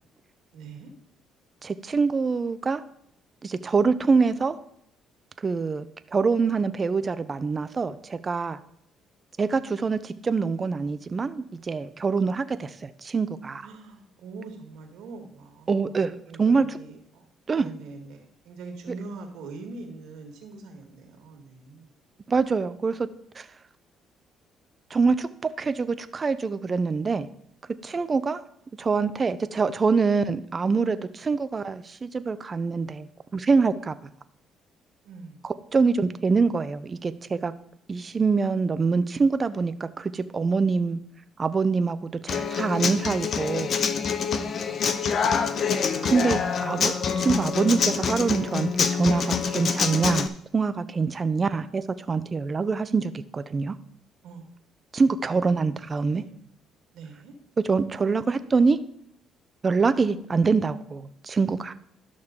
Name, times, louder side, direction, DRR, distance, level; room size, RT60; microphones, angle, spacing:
voice 1, 0.5-0.9 13.6-17.3 17.6-21.9 35.0-35.5 44.3-45.8 54.2-54.5 55.3-55.6 56.1-56.3 56.9-57.3, right 3 dB, 85° right, 3 dB, 1.9 m, -43 dB
voice 2, 1.6-2.8 3.4-4.6 5.4-5.9 6.1-8.6 9.4-13.7 15.7-16.8 17.5-17.7 22.3-23.1 23.4-23.5 24.9-27.3 27.8-28.4 28.8-34.0 35.4-37.5 37.9-41.0 41.4-43.7 46.0-53.8 54.9-56.2 57.6-58.8 59.6-61.7, right 4 dB, 35° right, 12 dB, 0.6 m, -25 dB
Human voice / Acoustic guitar, 42.3-50.3, left 6 dB, 55° left, 0.6 m, -26 dB
11.5 x 6.3 x 3.7 m, 0.71 s
cardioid pair, 90°, 0 cm